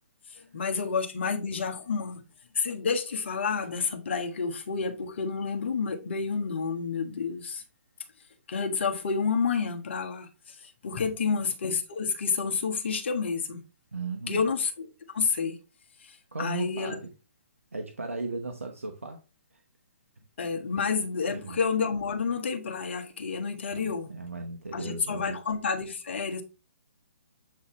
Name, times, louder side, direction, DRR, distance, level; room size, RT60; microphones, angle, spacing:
voice 1, 0.3-2.2 2.5-7.6 8.5-13.6 14.3-14.9 15.1-15.6 16.0-16.9 20.4-24.1 24.7-26.4, left 5 dB, 55° left, 1.5 m, -29 dB
voice 2, 13.9-14.4 16.3-17.1 17.7-19.2 21.2-21.6 23.7-25.4, right 3 dB, 80° right, 1.0 m, -36 dB
7.9 x 4.1 x 3.2 m
figure-of-eight pair, 130°, 7 cm